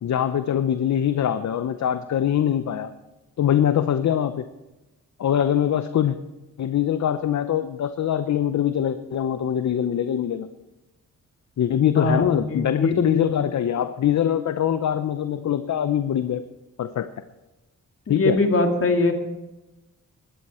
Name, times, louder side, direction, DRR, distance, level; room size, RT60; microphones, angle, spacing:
voice 1, 0.0-2.9 3.4-4.4 5.2-6.2 6.6-10.5 11.6-16.4 16.8-17.1 18.1-18.4, left 10 dB, 60° left, 11 dB, 0.7 m, -23 dB
voice 2, 11.9-13.3 18.1-19.1, left 2 dB, 45° left, 3 dB, 2.4 m, -22 dB
18.0 x 12.5 x 4.4 m, 1.0 s
cardioid pair, 85°, 32 cm